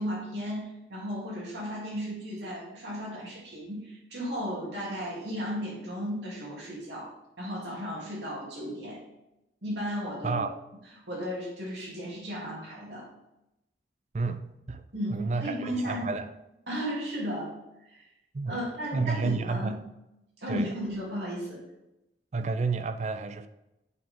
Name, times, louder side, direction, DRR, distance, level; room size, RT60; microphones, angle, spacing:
voice 1, 0.0-9.0 9.6-10.4 11.1-13.1 14.9-16.1 16.7-17.5 17.8-18.1 18.5-19.8 20.4-21.6, equal, 80° right, -5 dB, 2.9 m, -35 dB
voice 2, 14.1-14.8 15.1-16.3 18.3-18.6 18.9-19.8 20.5-20.7 22.3-23.5, right 4 dB, 40° right, 10 dB, 0.4 m, -30 dB
8.1 x 5.1 x 3.7 m, 0.91 s
head